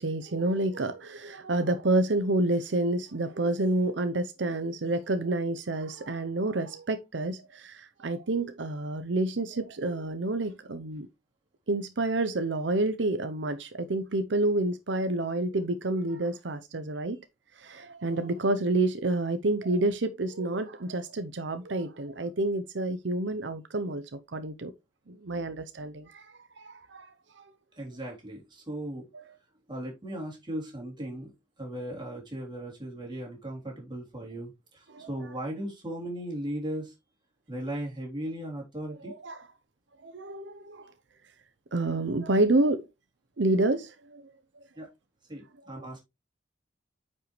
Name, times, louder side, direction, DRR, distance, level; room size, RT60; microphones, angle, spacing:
voice 1, 0.0-11.1 11.7-17.2 17.6-24.7 25.1-27.1 27.4-27.5 29.1-29.2 34.9-35.1 39.0-39.4 40.0-40.9 41.7-42.9 43.4-44.6 45.8-45.9, right 2 dB, 80° right, 0.8 m, -29 dB
voice 2, 27.7-29.1 29.7-31.3 31.6-36.9 37.5-39.1 44.8-44.9 45.3-46.0, right 1 dB, 25° right, 3.7 m, -37 dB
9.1 x 5.5 x 3.2 m
head